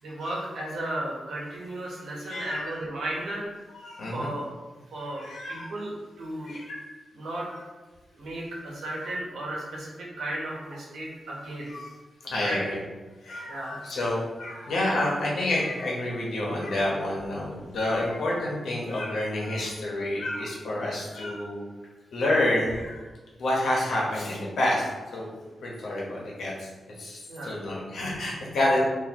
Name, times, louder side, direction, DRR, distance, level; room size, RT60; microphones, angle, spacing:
voice 1, 0.0-3.5 4.1-4.5 4.9-6.6 7.1-7.5 8.2-11.7 12.4-12.6 13.5-13.8 27.3-27.6 28.7-28.8, right 1 dB, 80° right, -4 dB, 1.0 m, -34 dB
voice 2, 2.2-2.7 3.8-4.3 5.0-5.7 6.4-6.8 11.7-11.9 12.2-12.8 13.2-21.6 22.1-23.0 23.4-25.3 25.6-26.7 27.0-28.8, left 1 dB, 80° left, -4 dB, 1.0 m, -29 dB
4.1 x 2.7 x 2.9 m, 1.3 s
wide cardioid pair, 135°, 0 cm